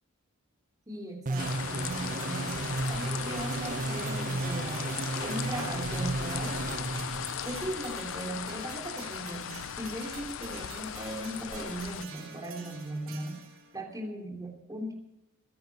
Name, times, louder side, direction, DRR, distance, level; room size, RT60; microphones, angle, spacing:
voice 1, 0.9-4.9 5.2-6.6 7.4-13.4 13.7-14.9, right 1 dB, 15° right, 0 dB, 3.1 m, -38 dB
sound 1, 1.3-7.7, right 2 dB, 35° right, 0.5 m, -34 dB
sound 2, 1.3-13.8, right 5 dB, 65° right, 3.2 m, -48 dB
sound 3, 1.4-12.1, left 9 dB, 60° left, 0.4 m, -38 dB
20.5 x 9.6 x 5.5 m, 0.88 s
head